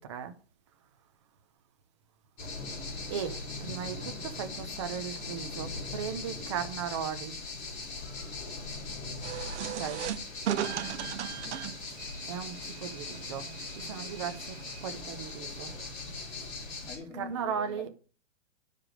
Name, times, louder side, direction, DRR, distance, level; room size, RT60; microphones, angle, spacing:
sound 1, 2.4-17.0, left 3 dB, 25° left, 3.4 m, -40 dB
voice 1, 3.1-7.4 9.8-10.0 12.2-12.6 12.8-13.5 13.8-14.4 14.8-15.7 17.2-17.9, right 8 dB, 25° right, 0.5 m, -36 dB
sound 2, 9.2-15.8, right 10 dB, 65° right, 0.8 m, -38 dB
voice 2, 11.0-11.6 16.8-17.9, left 2 dB, 5° left, 1.5 m, -45 dB
10.5 x 5.0 x 4.9 m
hypercardioid pair, 170°, 38 cm